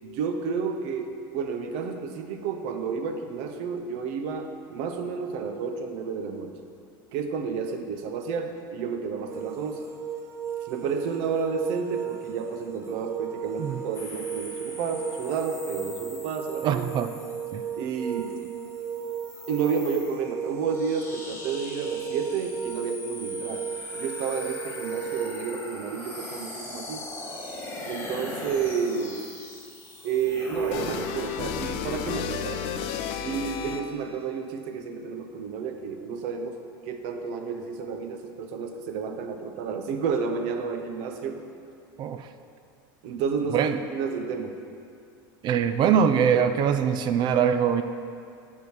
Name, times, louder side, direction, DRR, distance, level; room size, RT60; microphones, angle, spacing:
voice 1, 0.0-6.5 7.1-9.8 10.6-16.8 17.8-18.3 19.5-23.7 23.9-27.1 27.9-29.2 30.0-32.7 33.2-41.4 43.0-44.5, right 6 dB, 65° right, 6 dB, 0.8 m, -31 dB
sound 1, 9.3-25.4, right 8 dB, 25° right, 0.8 m, -36 dB
sound 2, 13.9-31.5, left 2 dB, 20° left, 1.7 m, -41 dB
voice 2, 16.6-17.1 17.5-17.6 42.0-42.3 43.5-43.8 45.4-47.8, right 7 dB, 40° right, 10 dB, 0.4 m, -23 dB
sound 3, 30.7-34.1, left 8 dB, 60° left, 0.5 m, -32 dB
9.2 x 3.7 x 6.4 m, 2.4 s
supercardioid pair, 125°, 11 cm